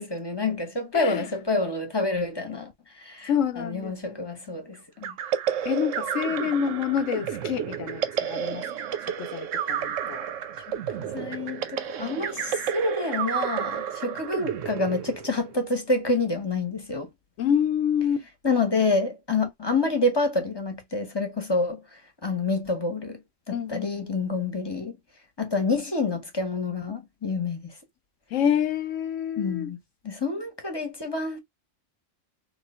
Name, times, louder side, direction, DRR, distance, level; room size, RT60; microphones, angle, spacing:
voice 1, 0.0-5.2 10.7-10.8 11.1-17.1 18.4-23.2 23.5-25.0 25.4-27.7 29.4-29.8 30.0-31.4, left 3 dB, 20° left, 0.9 m, -28 dB
voice 2, 0.9-1.2 3.3-4.6 5.7-8.6 9.0-10.3 17.4-18.2 23.5-24.2 28.3-29.7, left 8 dB, 85° left, 1.0 m, -28 dB
sound 1, 5.0-15.6, right 9 dB, 80° right, 1.0 m, -31 dB
3.0 x 2.3 x 4.1 m
omnidirectional pair, 1.3 m